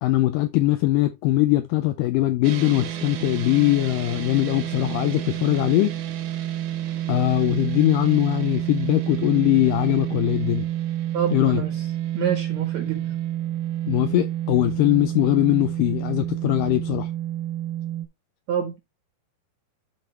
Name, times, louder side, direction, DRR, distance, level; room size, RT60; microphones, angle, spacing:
voice 1, 0.0-6.0 7.1-10.7 11.3-11.6 13.9-17.1, left 16 dB, 85° left, 1.9 m, -21 dB
sound 1, 2.4-18.1, right 12 dB, 85° right, 3.0 m, -29 dB
voice 2, 11.1-11.9 12.1-13.2 18.5-18.8, right 8 dB, 70° right, 1.7 m, -27 dB
11.5 x 4.1 x 3.1 m
omnidirectional pair, 4.3 m